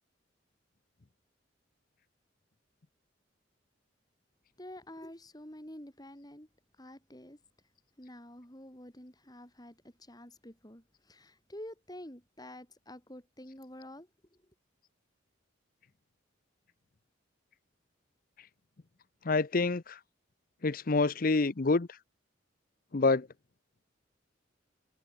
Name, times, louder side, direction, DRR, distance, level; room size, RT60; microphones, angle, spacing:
voice 1, 4.6-6.5 6.8-7.4 8.0-14.4, left 1 dB, 20° left, 6.0 m, -49 dB
voice 2, 19.2-20.0 20.6-21.9 22.9-23.3, left 3 dB, 45° left, 0.7 m, -27 dB
head